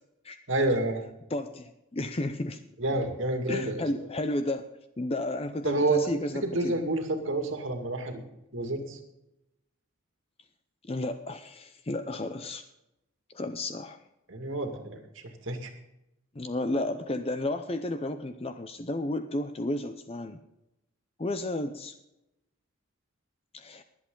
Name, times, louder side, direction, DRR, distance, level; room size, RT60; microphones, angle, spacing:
voice 1, 0.5-1.0 2.8-3.8 5.6-6.0 6.4-8.2 8.5-9.0 14.3-15.0 15.4-15.7, right 2 dB, 70° right, 4 dB, 2.2 m, -28 dB
voice 2, 1.3-2.6 3.5-4.7 5.0-6.8 10.8-12.6 13.3-14.0 16.3-20.4 21.2-21.9 23.5-23.8, left 1 dB, 30° left, 8 dB, 0.6 m, -32 dB
22.5 x 8.3 x 3.9 m, 0.87 s
head